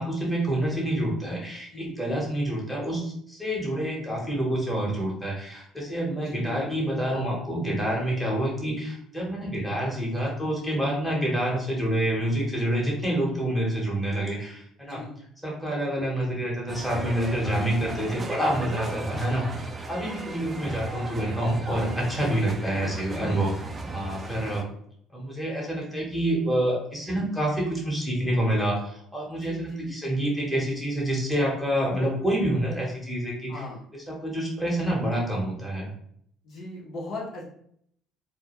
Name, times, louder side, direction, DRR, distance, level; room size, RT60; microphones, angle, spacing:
voice 1, 0.0-15.0 15.4-23.5 23.9-24.7 25.1-33.6 34.2-35.9, right 1 dB, 5° left, -4 dB, 1.0 m, -27 dB
voice 2, 1.7-2.0 6.1-6.8 14.8-15.2 19.1-19.5 27.1-27.4 29.4-30.0 33.5-33.8 36.4-37.5, left 2 dB, 55° left, -3 dB, 0.8 m, -39 dB
sound 1, 16.7-24.6, right 2 dB, 25° right, 0.3 m, -36 dB
2.3 x 2.2 x 2.9 m, 0.67 s
cardioid pair, 100°, 0 cm